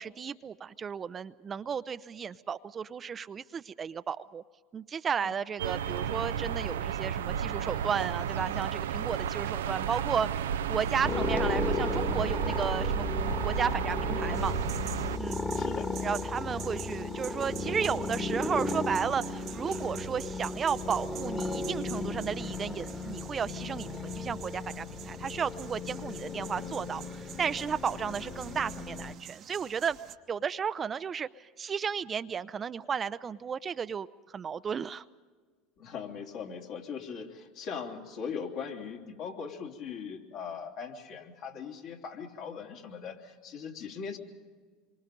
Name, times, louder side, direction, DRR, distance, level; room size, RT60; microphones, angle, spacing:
voice 1, 0.0-4.4 4.7-10.3 10.7-13.1 13.4-14.5 15.2-15.4 16.0-30.0 30.3-34.1 34.3-35.0, right 7 dB, 30° right, 13 dB, 0.6 m, -33 dB
sound 1, 5.6-15.2, right 8 dB, 85° right, 0.6 m, -32 dB
sound 2, 11.0-29.2, left 3 dB, 20° left, 1.8 m, -35 dB
sound 3, 14.3-30.1, right 11 dB, 50° right, 1.1 m, -48 dB
voice 2, 15.5-15.9 35.8-44.2, left 6 dB, 60° left, 0 dB, 3.4 m, -40 dB
26.5 x 24.0 x 5.3 m, 1.5 s
hypercardioid pair, 85°, 0 cm